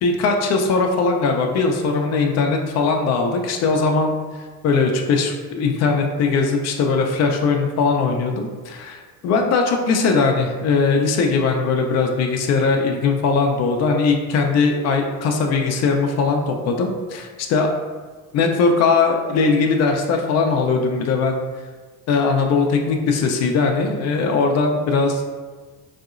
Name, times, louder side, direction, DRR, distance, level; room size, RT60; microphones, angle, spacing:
voice 1, 0.0-4.1 4.6-17.7 18.3-21.4 22.1-25.2, left 4 dB, 35° left, 3 dB, 0.5 m, -20 dB
4.0 x 2.6 x 2.4 m, 1.4 s
figure-of-eight pair, 55°, 46 cm